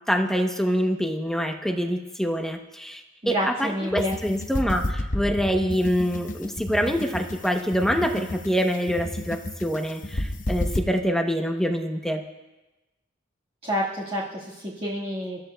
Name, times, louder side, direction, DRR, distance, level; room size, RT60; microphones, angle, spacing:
voice 1, 0.1-12.2, equal, ahead, 3 dB, 0.8 m, -25 dB
voice 2, 3.2-4.1 13.6-15.4, equal, 30° right, -7 dB, 1.6 m, -28 dB
sound 1, 3.9-10.8, left 1 dB, 40° left, 0.9 m, -31 dB
26.5 x 13.5 x 2.2 m, 1.1 s
head